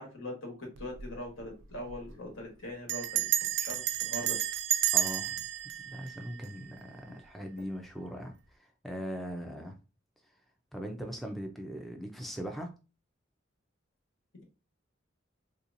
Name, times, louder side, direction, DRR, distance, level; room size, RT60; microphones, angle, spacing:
voice 1, 0.0-3.3 3.6-4.4, left 1 dB, 80° left, 1.4 m, -41 dB
Bell, 0.8-1.1 1.4-1.5 1.7-2.1 2.9-7.0, right 11 dB, 70° right, 0.4 m, -31 dB
voice 2, 4.9-5.4 5.9-8.3 8.6-9.8 10.7-12.7, equal, ahead, 0.4 m, -40 dB
3.7 x 2.8 x 2.5 m
head